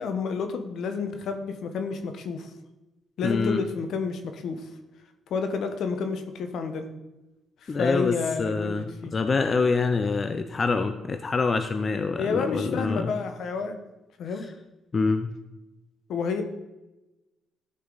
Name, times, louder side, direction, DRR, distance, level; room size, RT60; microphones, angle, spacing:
voice 1, 0.0-2.5 3.2-4.7 5.3-6.9 7.6-9.2 12.2-13.8 14.2-14.5 16.1-16.4, left 5 dB, 70° left, 7 dB, 1.1 m, -30 dB
voice 2, 3.2-3.6 7.7-13.1 14.9-15.3, left 4 dB, 35° left, 8 dB, 0.6 m, -26 dB
13.5 x 5.5 x 4.0 m, 1.0 s
cardioid pair, 90°, 0 cm